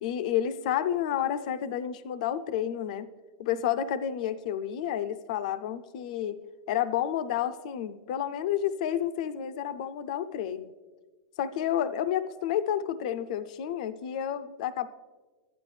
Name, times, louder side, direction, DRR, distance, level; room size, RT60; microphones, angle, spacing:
voice 1, 0.0-3.1 3.4-6.4 6.7-10.7 11.4-14.9, left 10 dB, 65° left, 12 dB, 0.4 m, -30 dB
11.5 x 9.5 x 3.2 m, 1.3 s
supercardioid pair, 125°, 4 cm